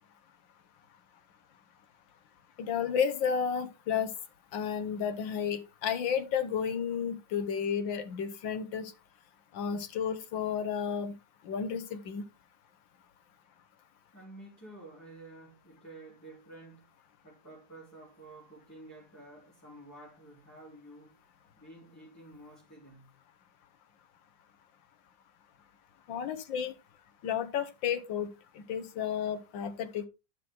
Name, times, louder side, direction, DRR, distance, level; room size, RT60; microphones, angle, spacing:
voice 1, 2.6-4.1 4.5-8.9 9.5-11.1 11.5-12.2 26.1-26.7 27.2-28.3 28.6-30.0, left 7 dB, 85° left, 1.8 m, -32 dB
voice 2, 14.1-16.9 17.2-21.1 21.6-23.2, right 2 dB, 10° left, 3.4 m, -51 dB
11.0 x 6.2 x 3.7 m
omnidirectional pair, 2.0 m